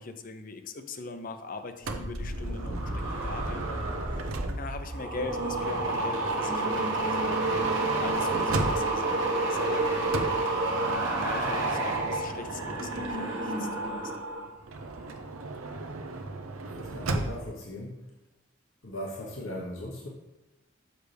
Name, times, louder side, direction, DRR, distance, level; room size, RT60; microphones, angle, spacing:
voice 1, 0.0-7.7 8.0-14.1, left 3 dB, 40° left, 8 dB, 0.6 m, -41 dB
sound 1, 1.8-14.5 14.8-15.2, right 2 dB, 65° right, 1.3 m, -30 dB
Motor vehicle (road) / Sliding door, 1.9-4.9 5.9-9.2 10.1-13.4 14.6-17.6, right 2 dB, 90° right, 0.7 m, -37 dB
voice 2, 16.7-18.1 18.8-20.1, left 1 dB, 70° left, -3 dB, 1.1 m, -38 dB
6.6 x 6.4 x 3.4 m, 0.97 s
head